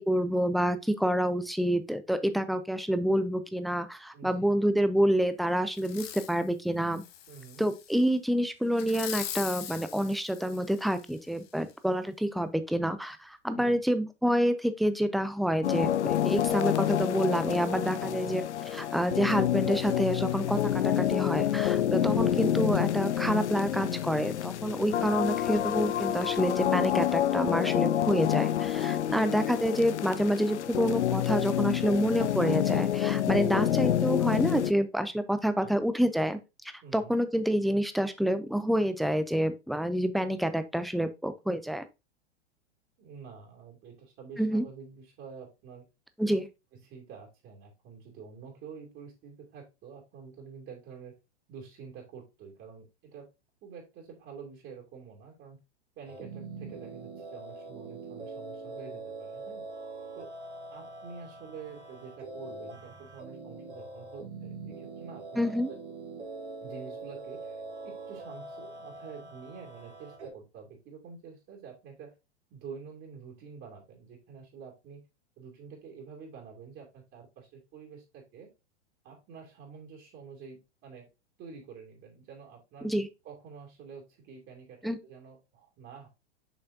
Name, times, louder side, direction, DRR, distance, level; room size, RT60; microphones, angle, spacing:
voice 1, 0.0-7.0 7.6-18.4 18.7-36.4 36.9-41.8 44.4-44.6 46.2-46.5 65.4-65.7 82.8-83.1 84.8-85.0, equal, ahead, 11 dB, 0.4 m, -28 dB
voice 2, 4.1-4.5 7.3-7.6 13.5-13.8 18.0-18.4 22.1-22.4 29.0-29.3 35.6-36.1 36.8-37.1 43.0-45.8 46.7-51.1 51.5-53.3 53.6-55.6 56.0-59.6 60.1-60.3 60.7-65.8 66.6-72.1 72.5-75.0 75.4-78.5 79.0-81.1 81.4-82.9 83.2-86.1, right 6 dB, 35° right, 0 dB, 2.6 m, -48 dB
Fireworks, 5.8-6.4 6.9-8.0 8.7-11.1 11.7-11.8, left 11 dB, 60° left, 1.1 m, -41 dB
sound 1, 15.6-34.7, left 11 dB, 85° left, 0.5 m, -28 dB
sound 2, 56.0-70.3, right 3 dB, 75° right, 2.3 m, -43 dB
7.1 x 5.5 x 2.6 m, 0.25 s
hypercardioid pair, 105°, 34 cm